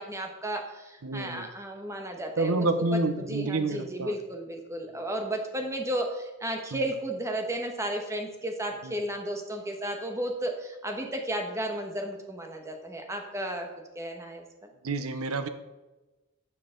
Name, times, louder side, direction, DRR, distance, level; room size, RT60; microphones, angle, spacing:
voice 1, 0.0-13.7 13.9-14.4, right 1 dB, 15° right, 3 dB, 1.2 m, -33 dB
voice 2, 1.0-1.5 2.4-4.1 6.7-6.8 14.8-15.5, right 2 dB, 90° right, 10 dB, 0.7 m, -28 dB
12.0 x 6.8 x 3.8 m, 1.1 s
head